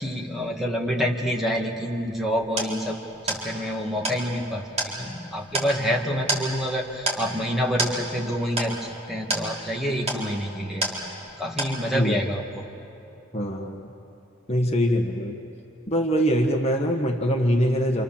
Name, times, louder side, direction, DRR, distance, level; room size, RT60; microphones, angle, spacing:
voice 1, 0.0-3.0 3.2-8.8 9.1-12.7, equal, ahead, -1 dB, 1.8 m, -27 dB
sound 1, 2.0-11.3 11.6-12.2, right 2 dB, 30° right, 4.3 m, -31 dB
voice 2, 13.3-13.9 14.5-15.4 15.9-18.0, equal, 30° left, 2 dB, 1.5 m, -23 dB
28.0 x 28.0 x 7.3 m, 2.9 s
head